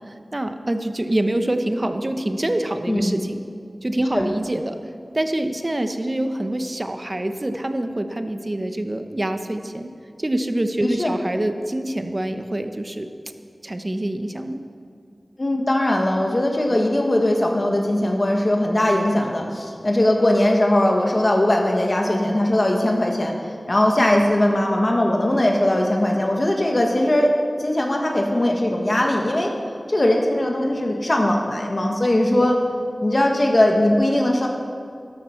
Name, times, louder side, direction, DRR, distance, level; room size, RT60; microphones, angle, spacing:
voice 1, 0.1-3.4 3.8-4.8 5.1-9.9 10.2-13.1 13.6-14.6 24.0-24.3 32.3-32.4, right 1 dB, 35° right, 7 dB, 0.9 m, -25 dB
voice 2, 10.8-11.2 15.4-23.3 23.7-27.3 27.6-29.5 29.9-32.6 33.0-34.5, left 1 dB, 45° left, 1 dB, 1.4 m, -20 dB
13.5 x 12.0 x 5.9 m, 2.3 s
wide cardioid pair, 65°, 0 cm